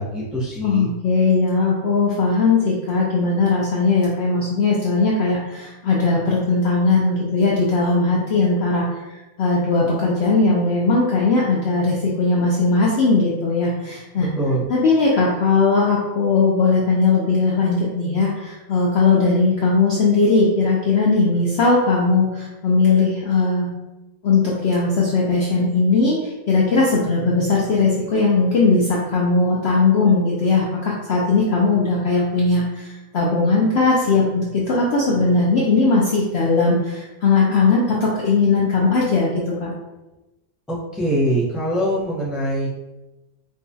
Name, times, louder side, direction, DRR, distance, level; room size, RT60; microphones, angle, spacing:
voice 1, 0.0-0.9 14.2-14.6 40.7-42.7, equal, ahead, -7 dB, 0.6 m, -23 dB
voice 2, 0.6-8.9 9.4-14.3 14.7-23.7 24.2-26.2 26.5-32.9 33.1-39.7, left 3 dB, 65° left, -4 dB, 0.7 m, -18 dB
4.8 x 2.3 x 2.6 m, 1.1 s
omnidirectional pair, 1.6 m